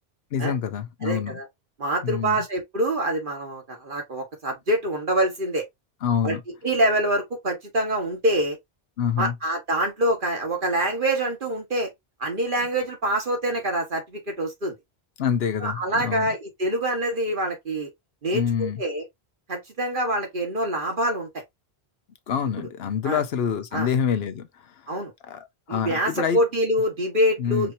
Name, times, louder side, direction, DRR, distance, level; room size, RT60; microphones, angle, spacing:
voice 1, 0.3-1.4 2.0-2.4 6.0-6.4 9.0-9.3 15.2-16.3 18.3-18.8 22.3-24.5 25.3-26.4 27.4-27.7, left 7 dB, 80° left, 1.0 m, -26 dB
voice 2, 1.0-1.5 1.8-5.7 6.2-6.4 6.6-8.6 9.2-11.9 12.2-14.8 15.6-17.9 18.2-19.0 19.5-21.4 23.0-23.2 23.7-23.9 24.9-25.1 25.7-27.7, right 1 dB, 55° right, 1.7 m, -25 dB
5.0 x 2.8 x 2.6 m
omnidirectional pair, 1.0 m